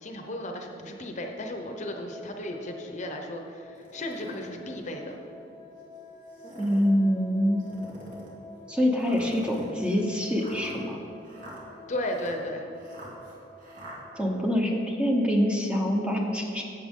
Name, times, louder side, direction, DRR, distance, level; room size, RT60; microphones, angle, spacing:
voice 1, 0.0-5.2 11.9-12.7, left 1 dB, 40° left, 3 dB, 0.8 m, -35 dB
sound 1, 1.6-15.5, left 2 dB, 30° right, 2.6 m, -49 dB
sound 2, 3.8-4.5 5.1-5.2 6.2-6.9 7.6-8.4 9.0-14.0, right 1 dB, 45° right, 2.0 m, -46 dB
voice 2, 6.6-7.7 8.7-11.0 14.1-16.6, equal, 5° right, 0 dB, 0.8 m, -25 dB
11.5 x 8.2 x 3.7 m, 2.7 s
head